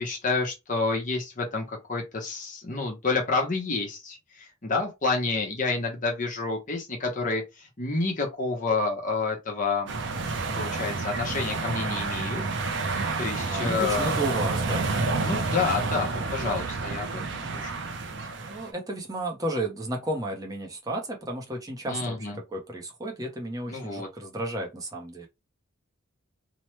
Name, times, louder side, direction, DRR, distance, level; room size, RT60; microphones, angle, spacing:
voice 1, 0.0-9.9 10.5-12.4 12.9-14.1 15.2-17.7 21.9-22.4 23.7-24.1, left 3 dB, 40° left, 0.8 m, -29 dB
sound 1, 9.9-18.7, right 3 dB, 60° right, 0.5 m, -29 dB
voice 2, 13.3-14.9 18.4-25.3, right 1 dB, 15° right, 0.7 m, -33 dB
3.0 x 2.1 x 3.1 m
head